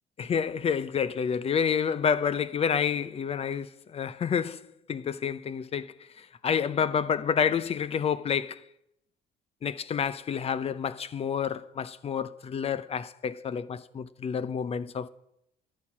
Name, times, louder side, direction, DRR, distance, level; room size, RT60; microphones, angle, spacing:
voice 1, 0.2-8.6 9.6-15.1, left 7 dB, 35° left, 0.6 m, -29 dB
11.5 x 9.1 x 7.2 m
cardioid pair, 110°, 17 cm